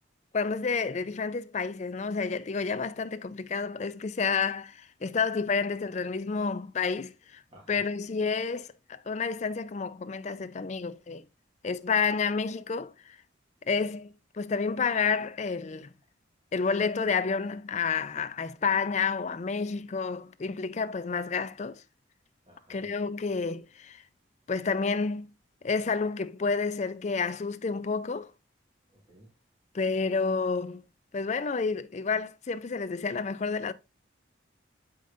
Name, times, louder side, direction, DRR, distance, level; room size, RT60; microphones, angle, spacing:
voice 1, 0.3-7.4 7.7-11.2 11.6-13.2 13.7-14.1 14.3-15.9 16.5-21.8 22.7-24.0 24.5-25.3 25.6-28.3 29.7-30.8 31.1-33.7, left 5 dB, 35° left, 0.4 m, -30 dB
voice 2, 22.5-22.9 28.9-29.3, equal, 30° right, 2.0 m, -55 dB
7.6 x 5.1 x 2.6 m
head